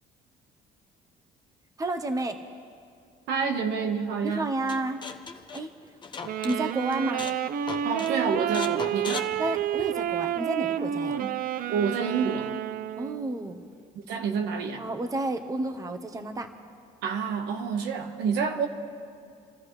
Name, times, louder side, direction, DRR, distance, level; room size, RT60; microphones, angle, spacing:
voice 1, 1.8-2.4 4.2-5.0 5.5-5.7 6.4-7.3 9.4-11.2 13.0-13.6 14.8-16.5, right 2 dB, 20° right, 6 dB, 1.1 m, -30 dB
voice 2, 3.3-4.5 7.8-9.3 11.1-11.3 11.7-12.5 13.9-14.8 17.0-18.7, right 6 dB, 85° right, 4 dB, 1.4 m, -28 dB
sound 1, 4.7-6.6 6.9-7.4 7.7-8.1 8.5-10.1, left 5 dB, 25° left, 1.0 m, -38 dB
Wind instrument woodwind instrument, 6.2-13.4, right 10 dB, 55° right, 0.5 m, -30 dB
29.0 x 13.0 x 3.3 m, 2.4 s
cardioid pair, 110°, 17 cm